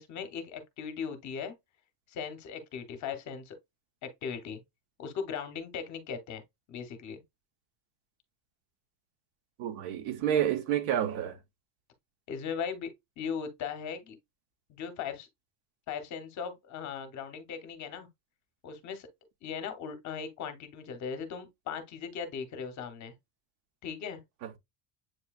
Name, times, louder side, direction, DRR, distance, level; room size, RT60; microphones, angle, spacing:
voice 1, 0.0-1.5 2.1-3.6 4.0-4.6 5.0-6.4 6.7-7.2 12.3-14.2 14.7-15.3 15.9-18.1 18.6-19.1 19.4-23.1 23.8-24.2, left 6 dB, 35° left, 0.7 m, -38 dB
voice 2, 9.6-11.4 24.4-24.6, right 10 dB, 75° right, 0.9 m, -29 dB
7.6 x 2.7 x 2.3 m
cardioid pair, 175°, 49 cm